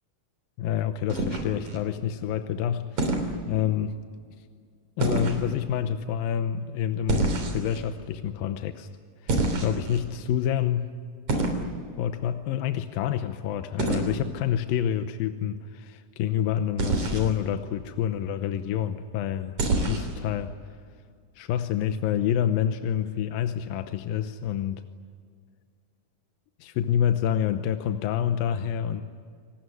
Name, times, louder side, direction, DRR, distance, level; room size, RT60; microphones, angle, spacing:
voice 1, 0.6-4.0 5.0-8.9 9.2-10.9 11.9-20.5 21.4-24.8 26.6-29.0, left 9 dB, 85° left, 9 dB, 2.7 m, -28 dB
sound 1, 1.1-1.8 3.0-3.3 5.0-5.4 7.1-7.8 9.3-10.0 11.3-11.6 13.8-14.1 16.8-17.3 19.6-20.1, right 2 dB, 55° right, 4.5 m, -26 dB
27.5 x 19.0 x 9.6 m, 2.1 s
omnidirectional pair, 4.0 m